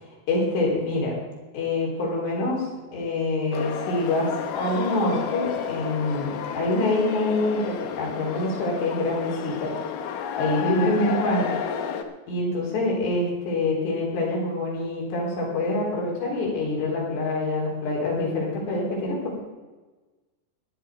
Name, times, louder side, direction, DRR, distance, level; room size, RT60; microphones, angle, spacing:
voice 1, 0.3-1.1 1.5-2.7 2.9-9.7 10.4-11.5 12.3-19.4, left 2 dB, 70° left, -3 dB, 5.9 m, -25 dB
london-tate-modern-empty-generator-hall-with-voices, 3.5-12.0, left 8 dB, 90° left, 1.9 m, -31 dB
15.0 x 10.5 x 4.9 m, 1.2 s
omnidirectional pair, 5.3 m